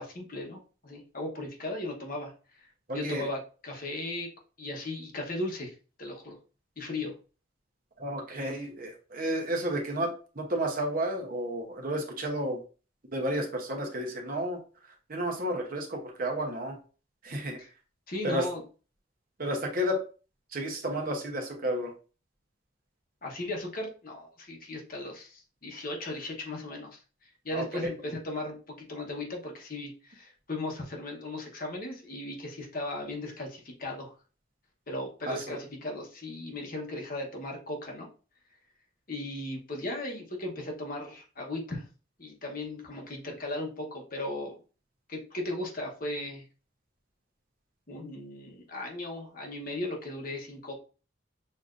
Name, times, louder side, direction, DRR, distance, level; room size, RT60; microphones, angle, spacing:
voice 1, 0.0-4.3 4.6-6.4 6.8-7.1 17.6-17.7 18.1-18.6 23.2-34.1 34.9-38.1 39.1-41.8 42.2-44.6 45.1-46.4 47.9-50.8, left 2 dB, 45° left, 0 dB, 1.0 m, -37 dB
voice 2, 2.9-3.3 8.0-12.6 13.1-14.6 15.1-16.8 17.2-17.6 18.2-18.5 19.4-20.0 20.5-21.9 27.5-27.7 35.3-35.6, right 1 dB, 45° right, 2 dB, 0.9 m, -31 dB
6.5 x 2.6 x 2.5 m, 0.36 s
head